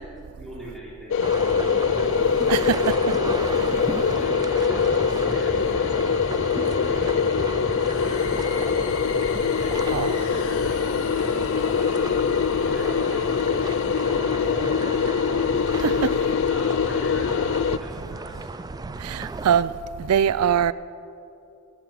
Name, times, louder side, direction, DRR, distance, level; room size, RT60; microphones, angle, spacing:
voice 1, 0.4-1.7 3.8-8.5 9.6-10.0 10.3-12.1 12.5-15.2 16.0-18.5, equal, ahead, 3.8 m, -41 dB
sound 1, 1.1-17.8, left 6 dB, 55° left, 0.3 m, -23 dB
sound 2, 1.2-19.6, right 3 dB, 15° right, 0.4 m, -34 dB
voice 2, 2.5-2.9 3.5-3.7 9.9-10.2 15.7-16.1 19.0-20.7, right 8 dB, 90° right, 0.4 m, -23 dB
sound 3, 7.7-14.3, left 6 dB, 75° left, 1.2 m, -42 dB
14.0 x 10.5 x 7.6 m
head